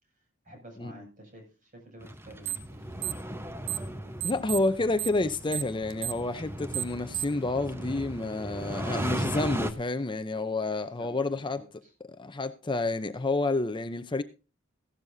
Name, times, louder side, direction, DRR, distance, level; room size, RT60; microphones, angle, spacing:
voice 1, 0.2-2.9 10.8-11.9, right 1 dB, 40° right, 7.2 m, -51 dB
sound 1, 2.0-9.7, right 1 dB, 10° right, 1.0 m, -37 dB
sound 2, 2.4-2.7 3.0-3.9 4.2-7.4, right 12 dB, 65° right, 1.0 m, -33 dB
voice 2, 4.2-11.6 12.1-14.2, left 2 dB, 25° left, 0.6 m, -29 dB
16.5 x 12.0 x 2.7 m
head